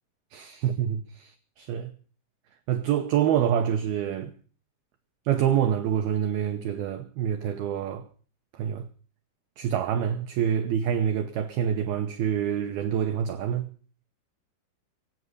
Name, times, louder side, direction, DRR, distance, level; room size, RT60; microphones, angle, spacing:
voice 1, 0.3-1.9 2.7-4.3 5.3-8.0 8.6-8.9 9.6-13.7, right 9 dB, 80° right, 2.3 m, -26 dB
24.5 x 8.5 x 5.4 m
omnidirectional pair, 5.7 m